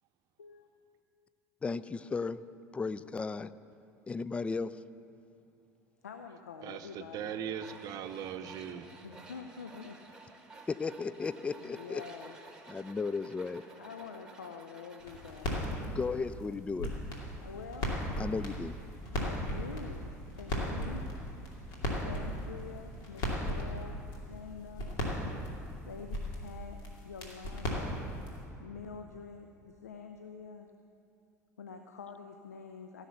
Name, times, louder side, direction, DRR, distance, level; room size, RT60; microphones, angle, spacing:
voice 1, 1.6-2.4 2.7-3.5 4.1-4.7 10.7-12.0 12.7-13.6 15.8-16.9 18.2-18.7, left 4 dB, 15° left, 16 dB, 0.3 m, -35 dB
voice 2, 6.0-7.7 9.0-10.0 11.6-12.4 13.8-16.0 17.4-17.9 19.1-21.2 22.0-25.0 25.8-28.1 28.6-30.7 31.6-33.1, left 5 dB, 80° left, 6 dB, 0.5 m, -47 dB
voice 3, 6.6-8.9, right 9 dB, 45° right, 9 dB, 0.8 m, -39 dB
Tools, 7.6-15.5, right 3 dB, 10° right, 1.7 m, -53 dB
sound 1, 15.0-28.4, left 1 dB, 50° left, 2.7 m, -37 dB
15.5 x 6.5 x 7.8 m, 2.7 s
figure-of-eight pair, 70°, 9 cm